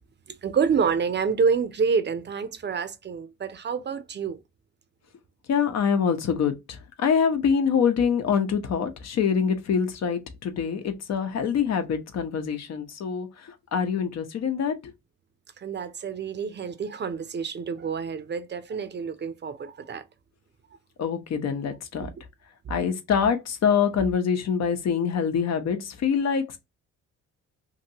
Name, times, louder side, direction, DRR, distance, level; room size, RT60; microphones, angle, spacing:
voice 1, 0.3-4.4 15.6-20.0, right 6 dB, 35° right, 0.6 m, -28 dB
voice 2, 5.5-6.5 7.0-13.3 13.7-14.7 21.0-22.1 22.7-26.6, left 7 dB, 60° left, 0.9 m, -25 dB
2.9 x 2.7 x 2.8 m
cardioid pair, 90°, 30 cm